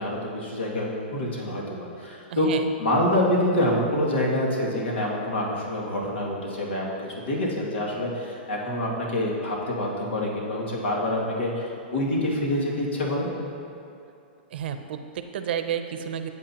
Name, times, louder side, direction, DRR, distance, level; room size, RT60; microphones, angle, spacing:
voice 1, 0.0-2.5 2.8-13.3, left 1 dB, 90° left, -3 dB, 2.3 m, -26 dB
voice 2, 2.3-2.7 14.5-16.3, right 9 dB, 65° right, 8 dB, 0.7 m, -31 dB
14.0 x 8.2 x 2.9 m, 2.7 s
hypercardioid pair, 150°, 6 cm